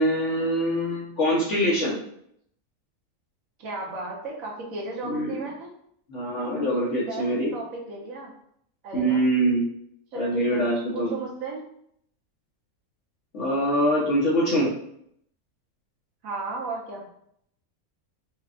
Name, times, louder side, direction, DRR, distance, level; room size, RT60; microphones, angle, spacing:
voice 1, 0.0-1.9 5.0-5.4 6.1-7.5 8.9-9.6 10.1-11.1 13.3-14.7, equal, 60° left, -6 dB, 1.1 m, -24 dB
voice 2, 3.6-5.7 6.9-8.3 8.8-9.3 10.1-10.6 10.9-11.6 16.2-17.1, right 3 dB, 70° right, -2 dB, 1.3 m, -34 dB
4.8 x 2.2 x 2.4 m, 0.70 s
omnidirectional pair, 1.5 m